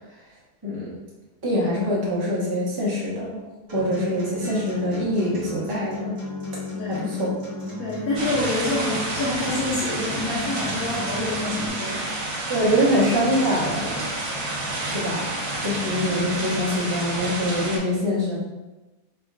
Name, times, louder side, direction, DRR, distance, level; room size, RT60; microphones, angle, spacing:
voice 1, 1.4-3.4 3.7-6.2 6.8-7.3 12.5-14.0 14.8-15.2 15.6-18.4, equal, 15° right, -7 dB, 1.0 m, -24 dB
Acoustic guitar, 3.7-11.7, left 1 dB, 40° right, 1.5 m, -35 dB
voice 2, 6.7-7.2 7.8-12.2, left 2 dB, 65° left, -8 dB, 1.4 m, -27 dB
sound 1, 8.1-17.8, right 2 dB, 70° right, 1.4 m, -29 dB
4.9 x 3.6 x 2.4 m, 1.1 s
omnidirectional pair, 1.7 m